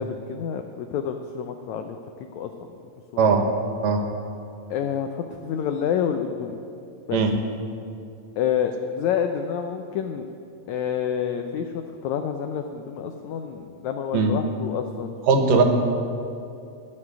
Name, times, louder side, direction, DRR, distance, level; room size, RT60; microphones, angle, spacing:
voice 1, 0.0-2.7 3.1-3.2 4.7-6.6 7.1-7.2 8.4-10.3 10.7-15.1 15.4-15.6, left 8 dB, 85° left, 6 dB, 1.6 m, -28 dB
voice 2, 15.3-15.6, right 5 dB, 70° right, 4 dB, 2.7 m, -19 dB
14.5 x 6.6 x 9.9 m, 2.6 s
omnidirectional pair, 4.1 m